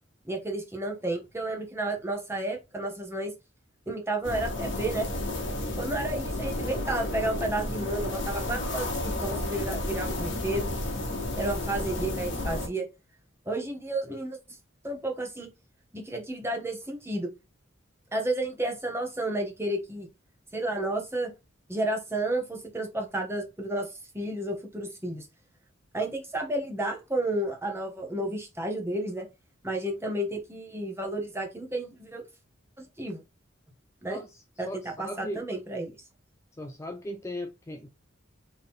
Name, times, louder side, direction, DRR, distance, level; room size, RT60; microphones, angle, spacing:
voice 1, 0.3-3.3 3.9-5.1 5.8-10.7 11.4-12.9 13.5-14.4 14.8-15.5 15.9-17.3 18.1-20.1 20.5-21.3 21.7-23.9 24.1-25.3 25.9-29.3 29.6-32.2 32.8-33.2 34.0-34.2 34.6-34.7 35.0-35.9, right 1 dB, 15° right, 1.1 m, -31 dB
sound 1, 4.2-12.7, left 1 dB, 65° left, 1.3 m, -32 dB
voice 2, 34.1-35.4 36.6-37.9, left 1 dB, 15° left, 0.3 m, -38 dB
4.2 x 3.2 x 3.6 m
head